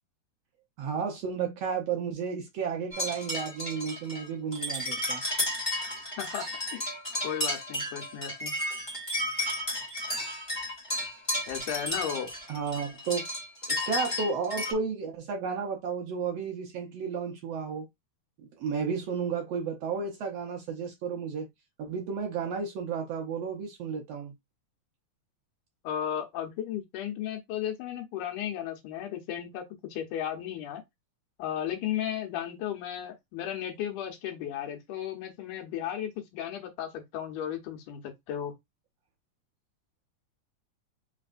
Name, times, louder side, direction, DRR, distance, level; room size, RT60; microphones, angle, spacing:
voice 1, 0.8-5.2 12.5-13.3 13.7-17.9 18.6-21.5 21.8-24.3, right 6 dB, 70° right, 1.6 m, -32 dB
sound 1, 2.9-14.7, left 1 dB, 20° left, 0.8 m, -33 dB
voice 2, 7.2-8.6 11.5-12.3 25.8-29.6 29.9-30.8 31.4-38.5, left 10 dB, 85° left, 2.5 m, -35 dB
5.1 x 3.2 x 2.5 m
omnidirectional pair, 3.5 m